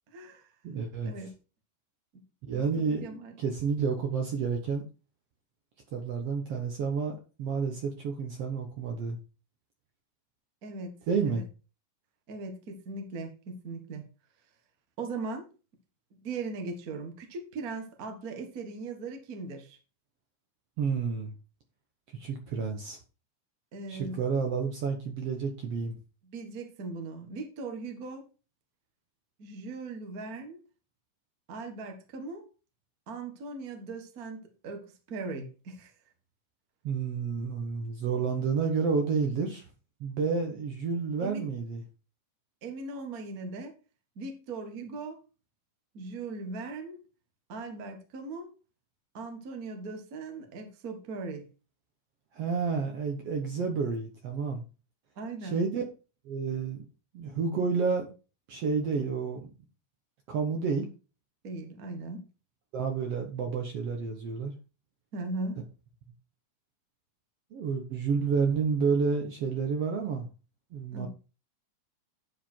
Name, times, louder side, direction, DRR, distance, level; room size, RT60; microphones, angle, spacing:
voice 1, 0.1-0.5 1.0-1.3 2.5-3.4 10.6-10.9 11.2-11.4 12.3-14.0 15.0-15.4 16.2-19.8 23.7-24.2 26.2-28.2 29.4-30.6 31.5-32.4 33.1-35.9 41.2-41.5 42.6-43.7 44.1-45.2 45.9-47.0 47.5-48.5 49.1-51.5 55.2-55.6 61.4-62.2 65.1-65.6 70.9-71.1, right 3 dB, 40° right, 1.4 m, -39 dB
voice 2, 0.6-1.1 2.5-3.1 3.4-4.8 5.9-9.2 11.1-11.4 20.8-21.3 22.1-23.0 23.9-26.0 36.8-39.7 40.0-41.8 52.3-54.6 55.4-55.8 56.3-56.9 57.1-58.1 58.5-59.5 60.3-60.9 62.7-64.5 67.5-70.3 70.7-71.1, right 5 dB, 60° right, 1.8 m, -30 dB
10.0 x 5.0 x 4.5 m
omnidirectional pair, 3.8 m